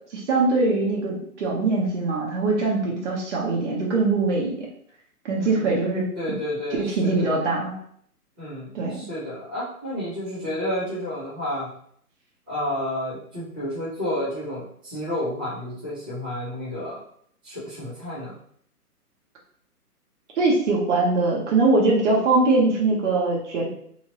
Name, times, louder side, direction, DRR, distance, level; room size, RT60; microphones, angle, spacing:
voice 1, 0.1-4.7 5.2-6.1 6.8-7.7 8.7-9.0 20.4-23.7, right 3 dB, 50° right, -3 dB, 1.2 m, -22 dB
voice 2, 5.4-7.4 8.4-11.7 12.5-17.0 17.4-18.4, left 1 dB, 5° right, -16 dB, 0.5 m, -31 dB
3.0 x 2.7 x 2.7 m, 0.64 s
hypercardioid pair, 145°, 46 cm